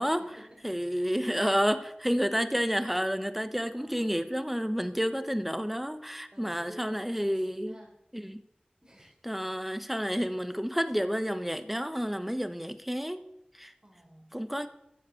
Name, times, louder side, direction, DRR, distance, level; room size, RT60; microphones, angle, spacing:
voice 1, 0.0-0.6 0.9-1.1 3.8-4.3 4.6-5.1 6.3-7.9 8.8-9.1 13.8-14.3, equal, 30° right, 0 dB, 4.6 m, -54 dB
voice 2, 0.6-7.7 8.1-8.4 9.2-13.2 13.5-13.7 14.3-14.7, equal, 5° right, 10 dB, 1.2 m, -30 dB
14.5 x 8.0 x 7.2 m, 0.81 s
wide cardioid pair, 40°, 3 cm